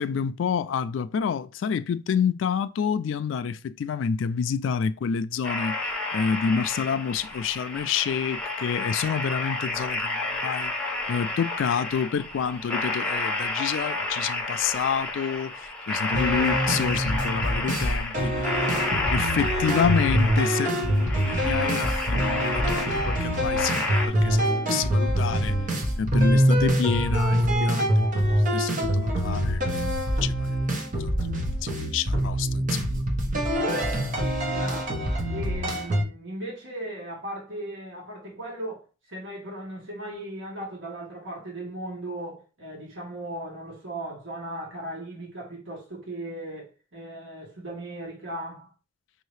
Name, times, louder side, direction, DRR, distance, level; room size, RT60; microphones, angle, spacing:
voice 1, 0.0-5.8 6.1-10.7 11.1-18.8 19.1-25.6 25.9-27.9 28.5-29.6 30.2-30.5 31.0-31.1 31.6-33.0, left 7 dB, 85° left, 0.3 m, -28 dB
sound 1, 5.4-24.1, left 2 dB, 5° left, 0.9 m, -30 dB
sound 2, 16.1-36.0, equal, 45° right, 1.0 m, -25 dB
voice 2, 34.5-48.7, right 1 dB, 85° right, 1.4 m, -37 dB
5.5 x 2.7 x 3.2 m
head